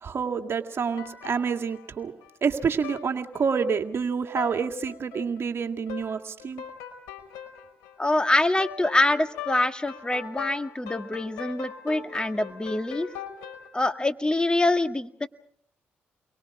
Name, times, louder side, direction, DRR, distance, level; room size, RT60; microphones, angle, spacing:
voice 1, 0.0-2.1 2.4-6.6, right 6 dB, 50° right, 5 dB, 2.1 m, -28 dB
sound 1, 1.0-2.5 2.8-3.0 3.3-3.9 4.3-4.5 4.9-5.4 5.9-6.1 6.4-13.7, left 8 dB, 80° left, 4.7 m, -40 dB
voice 2, 8.0-13.1 13.7-15.3, left 2 dB, 15° left, 8 dB, 1.9 m, -25 dB
30.0 x 23.0 x 4.9 m, 0.63 s
hypercardioid pair, 50°, 5 cm